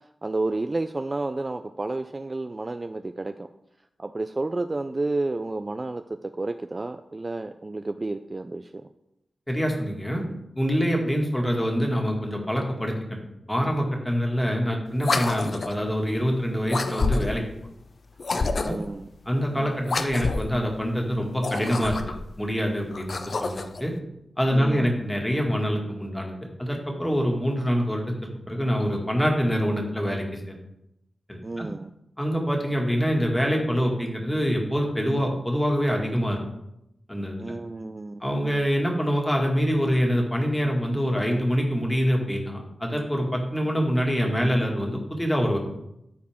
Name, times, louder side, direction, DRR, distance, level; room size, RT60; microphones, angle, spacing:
voice 1, 0.2-3.5 4.0-8.9 18.6-19.1 19.5-19.7 24.5-24.9 31.4-31.9 37.4-38.2, right 2 dB, 30° right, 8 dB, 0.4 m, -31 dB
voice 2, 9.5-10.3 10.6-13.2 13.5-17.4 18.3-18.8 19.3-22.0 22.4-23.9 24.4-30.6 31.3-31.7 32.2-36.4 37.1-37.5 38.2-45.6, equal, 10° left, 0 dB, 2.0 m, -25 dB
sound 1, 15.0-15.8 16.7-17.5 18.2-18.9 19.8-20.6 21.3-22.3 22.9-23.8, left 3 dB, 60° left, 0.6 m, -28 dB
13.5 x 4.6 x 3.6 m, 0.84 s
wide cardioid pair, 80°, 0 cm